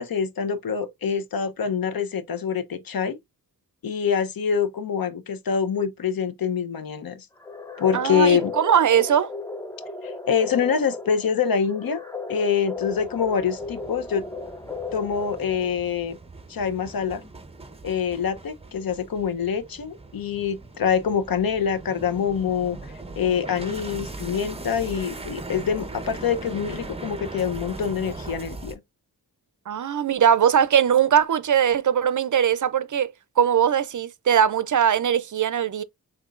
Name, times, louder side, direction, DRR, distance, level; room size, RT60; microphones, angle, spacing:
voice 1, 0.0-3.2 3.8-7.3 7.8-8.5 10.0-12.0 12.3-14.2 14.9-16.2 16.5-17.2 17.8-28.8, left 7 dB, 70° left, 0.8 m, -25 dB
sound 1, 7.4-15.8, left 3 dB, 10° left, 0.6 m, -36 dB
voice 2, 7.9-9.3 29.7-35.8, right 8 dB, 55° right, 0.5 m, -20 dB
sound 2, 12.8-28.7, right 2 dB, 15° right, 0.9 m, -39 dB
5.7 x 3.8 x 2.4 m
wide cardioid pair, 110°, 36 cm